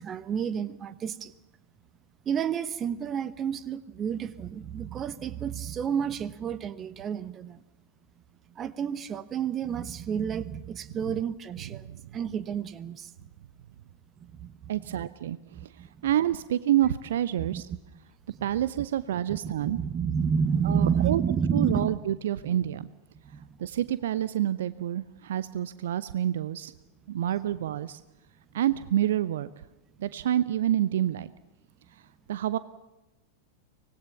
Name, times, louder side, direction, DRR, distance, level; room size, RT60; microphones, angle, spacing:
voice 1, 0.0-1.3 2.2-7.6 8.5-13.1 14.2-15.0 15.5-16.1 17.4-17.6 19.3-22.0 23.3-23.5, right 7 dB, 25° right, 15 dB, 1.2 m, -30 dB
voice 2, 14.7-17.7 18.4-19.8 20.6-21.2 21.5-22.9 23.6-26.7 27.1-28.0 28.5-29.5 30.0-31.3 32.3-32.6, right 11 dB, 60° right, 16 dB, 0.7 m, -28 dB
24.5 x 19.0 x 7.0 m, 1.0 s
figure-of-eight pair, 90°, 0 cm